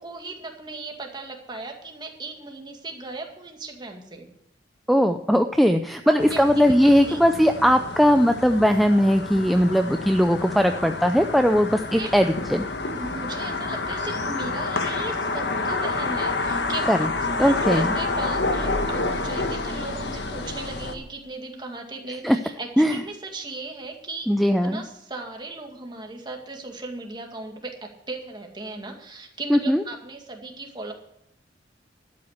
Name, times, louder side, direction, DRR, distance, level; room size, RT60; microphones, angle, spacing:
voice 1, 0.0-4.3 6.0-6.7 7.1-7.2 11.9-12.1 13.0-24.3 24.6-30.9, right 3 dB, 25° right, 2 dB, 2.1 m, -37 dB
voice 2, 4.9-12.7 16.9-17.0 17.4-18.0 22.2-22.4 22.8-23.0 24.3-24.8 29.5-29.8, equal, ahead, 7 dB, 0.5 m, -19 dB
sound 1, 6.2-20.9, left 3 dB, 70° left, 1.3 m, -29 dB
12.5 x 8.7 x 6.5 m, 0.79 s
head